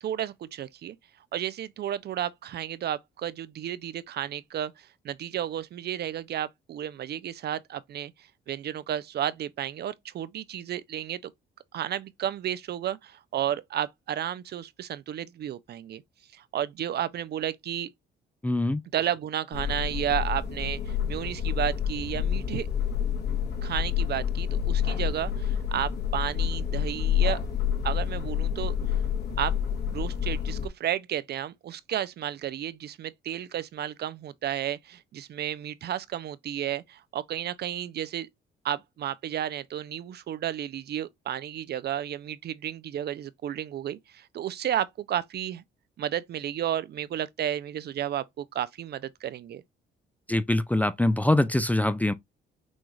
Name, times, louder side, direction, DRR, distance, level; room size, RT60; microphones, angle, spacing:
voice 1, 0.0-1.0 1.3-4.7 5.0-8.1 8.5-11.3 11.7-16.0 16.3-17.9 18.9-22.7 23.6-27.4 27.8-28.8 29.4-29.5 29.9-38.3 38.6-45.6 46.0-49.6, right 10 dB, 55° right, 0.4 m, -32 dB
voice 2, 18.4-18.8 50.3-52.1, left 1 dB, 10° left, 0.4 m, -24 dB
sound 1, 19.5-30.7, left 8 dB, 55° left, 1.6 m, -28 dB
6.2 x 2.4 x 3.1 m
cardioid pair, 90°, 20 cm